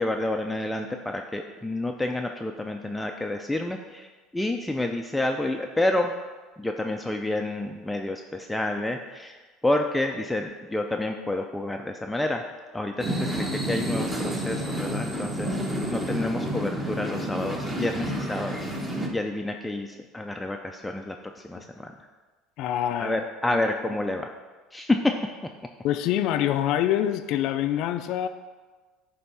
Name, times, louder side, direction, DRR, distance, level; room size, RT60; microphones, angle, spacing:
voice 1, 0.0-4.1 4.3-6.1 6.6-9.4 9.6-12.4 12.7-15.5 15.9-18.7 19.1-21.2 21.4-21.9 23.0-24.3 24.7-25.1, left 2 dB, 5° left, 3 dB, 0.4 m, -29 dB
sound 1, 13.0-19.1, equal, 15° right, 1.1 m, -30 dB
voice 2, 22.6-23.6 25.8-28.3, left 11 dB, 65° left, 9 dB, 0.4 m, -26 dB
9.6 x 3.4 x 5.5 m, 1.3 s
cardioid pair, 125°, 0 cm